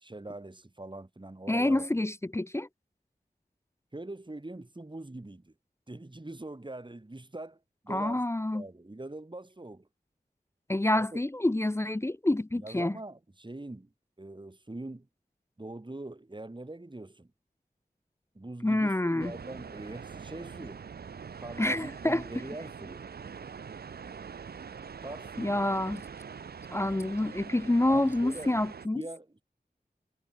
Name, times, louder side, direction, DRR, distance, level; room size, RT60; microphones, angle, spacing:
voice 1, 0.0-1.9 3.9-5.5 5.9-7.6 7.8-8.2 8.5-9.9 10.9-11.2 12.5-13.9 14.2-15.1 15.6-17.3 18.3-20.9 21.4-23.1 25.0-25.8 27.9-28.5 28.9-29.3, right 2 dB, 30° right, 1.5 m, -42 dB
voice 2, 1.5-2.7 7.9-8.6 10.7-13.0 18.6-19.3 21.6-22.2 25.4-26.0 26.7-29.0, left 1 dB, 15° left, 0.3 m, -27 dB
sound 1, 19.2-28.9, right 6 dB, 70° right, 0.4 m, -44 dB
wide cardioid pair, 40°, 17 cm